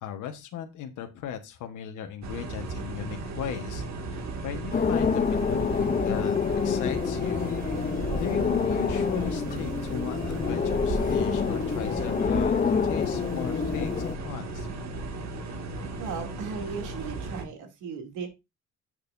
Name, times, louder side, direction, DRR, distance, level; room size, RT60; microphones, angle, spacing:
voice 1, 0.0-6.4 6.6-7.5 8.1-12.6 12.8-14.7, left 9 dB, 85° left, 6 dB, 1.3 m, -37 dB
sound 1, 2.2-17.4, right 3 dB, 60° right, 2.0 m, -35 dB
sound 2, 4.7-14.2, left 6 dB, 30° left, 0.6 m, -27 dB
voice 2, 16.0-18.3, right 5 dB, 90° right, 4 dB, 2.7 m, -36 dB
10.5 x 6.6 x 2.6 m, 0.23 s
cardioid pair, 90°, 30 cm